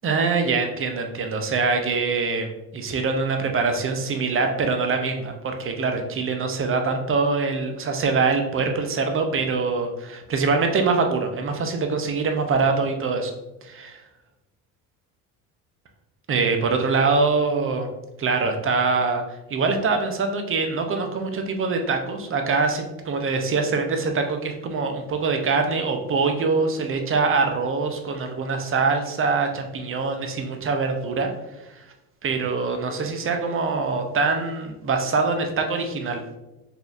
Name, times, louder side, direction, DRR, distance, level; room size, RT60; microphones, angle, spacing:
voice 1, 0.0-13.3 13.6-14.0 16.3-17.9 18.2-19.2 19.5-31.3 31.7-31.9 32.2-36.2, right 4 dB, 30° right, 5 dB, 0.6 m, -24 dB
4.0 x 2.8 x 2.5 m, 0.96 s
hypercardioid pair, 70°, 44 cm